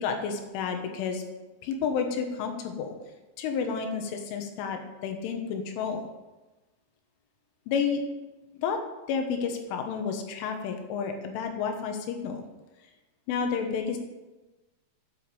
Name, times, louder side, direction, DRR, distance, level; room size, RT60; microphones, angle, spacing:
voice 1, 0.0-1.2 1.6-3.0 3.4-6.0 7.7-8.0 8.6-8.8 9.1-12.5 13.3-14.0, left 6 dB, 85° left, 5 dB, 3.8 m, -30 dB
9.6 x 8.0 x 7.0 m, 1.1 s
omnidirectional pair, 5.5 m